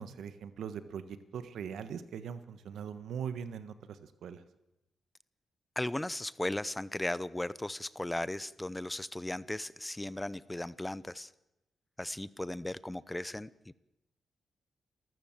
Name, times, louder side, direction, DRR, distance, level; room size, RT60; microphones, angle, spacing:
voice 1, 0.0-4.4, right 7 dB, 85° right, 12 dB, 1.4 m, -41 dB
voice 2, 5.8-11.3 12.0-13.5, left 1 dB, 10° left, 18 dB, 0.7 m, -36 dB
28.0 x 14.0 x 7.4 m, 0.92 s
cardioid pair, 85°, 0 cm